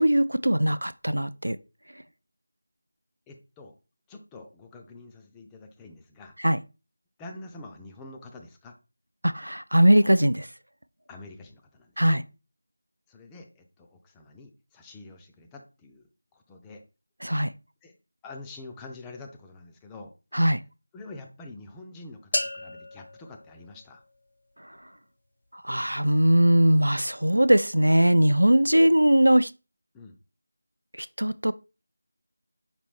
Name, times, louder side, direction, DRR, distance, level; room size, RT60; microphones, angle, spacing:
voice 1, 0.0-1.6 6.4-6.6 9.2-10.5 12.0-12.2 17.2-17.5 20.3-20.6 25.5-29.5 31.0-31.5, right 1 dB, 85° right, 0.3 m, -20 dB
voice 2, 3.3-3.7 4.1-6.3 7.2-8.7 11.1-12.2 13.1-16.8 17.8-18.0 18.2-20.1 20.9-24.0 29.9-30.2, left 2 dB, 10° left, 0.4 m, -46 dB
sound 1, 22.3-24.3, left 1 dB, 65° left, 0.4 m, -34 dB
5.1 x 2.6 x 3.4 m
figure-of-eight pair, 165°, 0 cm